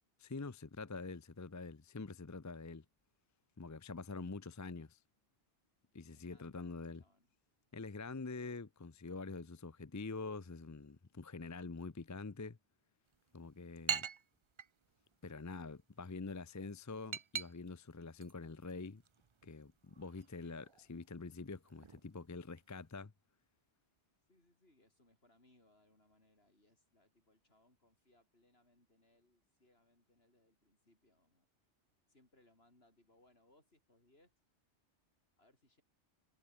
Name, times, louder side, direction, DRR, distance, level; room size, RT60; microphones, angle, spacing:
voice 1, 0.2-2.8 3.6-5.0 5.9-7.0 7.7-12.6 13.3-14.1 15.2-19.0 19.4-23.1, left 3 dB, 20° left, 0.5 m, -46 dB
voice 2, 6.1-7.3 24.3-31.4 32.1-34.3 35.4-35.8, left 1 dB, 60° left, 6.5 m, -71 dB
sound 1, 13.1-23.0, right 6 dB, 45° right, 0.4 m, -47 dB
omnidirectional pair, 1.2 m